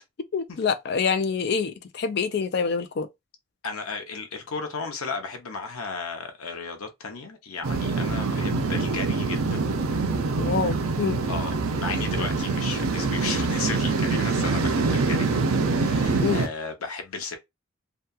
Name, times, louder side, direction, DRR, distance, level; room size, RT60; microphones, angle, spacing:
voice 1, 0.3-3.1 10.4-11.2 16.2-16.4, left 5 dB, 50° left, 0.4 m, -26 dB
voice 2, 3.6-9.7 11.3-17.4, left 4 dB, 85° left, 0.7 m, -34 dB
sound 1, 7.6-16.5, right 3 dB, 80° right, 0.5 m, -25 dB
2.7 x 2.3 x 2.3 m
head